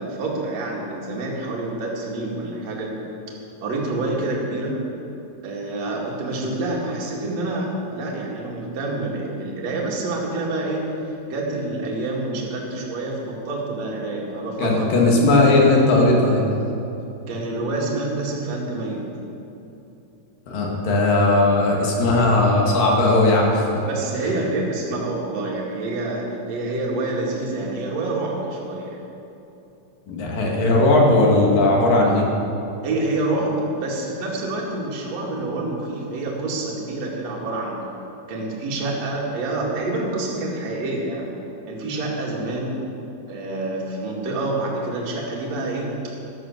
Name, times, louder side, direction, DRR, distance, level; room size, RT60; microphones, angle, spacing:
voice 1, 0.0-2.9 3.6-4.8 5.4-10.8 11.3-15.2 17.3-19.0 23.9-28.9 32.8-37.8 38.3-41.3 41.7-42.8 43.3-45.9, right 2 dB, 55° right, -3 dB, 3.2 m, -27 dB
voice 2, 14.6-16.4 20.5-23.7 30.1-32.3, left 2 dB, 75° left, -1 dB, 3.7 m, -17 dB
14.0 x 11.5 x 6.7 m, 2.8 s
omnidirectional pair, 3.9 m